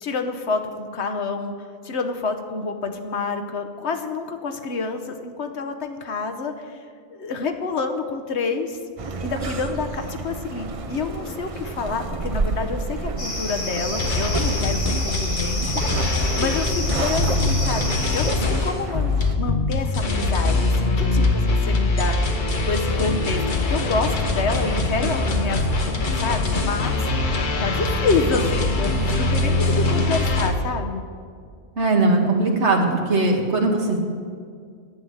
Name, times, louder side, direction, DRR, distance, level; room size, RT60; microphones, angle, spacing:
voice 1, 0.0-6.8 7.1-8.8 9.2-23.4 23.7-26.0 26.2-27.1 27.6-31.0, left 4 dB, 65° left, 5 dB, 1.2 m, -28 dB
sound 1, 9.0-19.4, right 3 dB, 35° right, 0.6 m, -30 dB
sound 2, 13.2-18.3, left 2 dB, 85° left, 3.4 m, -30 dB
sound 3, 14.0-30.5, left 2 dB, 45° left, 1.2 m, -23 dB
voice 2, 31.8-34.0, right 2 dB, 70° right, 2 dB, 1.8 m, -20 dB
10.5 x 7.7 x 9.5 m, 2.1 s
omnidirectional pair, 1.2 m